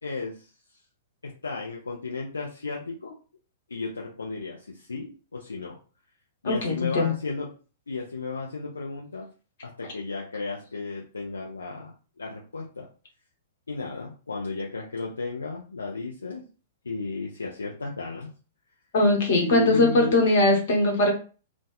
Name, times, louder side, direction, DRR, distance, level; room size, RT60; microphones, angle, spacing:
voice 1, 0.0-0.5 1.2-3.2 3.7-5.8 6.4-7.5 7.9-9.3 9.6-12.9 13.7-16.4 16.8-18.3 19.3-20.2, left 3 dB, 75° left, -2 dB, 0.4 m, -34 dB
voice 2, 6.4-7.1 18.9-21.1, left 2 dB, 55° left, 0 dB, 1.0 m, -21 dB
2.5 x 2.1 x 2.3 m, 0.36 s
figure-of-eight pair, 105°, 0 cm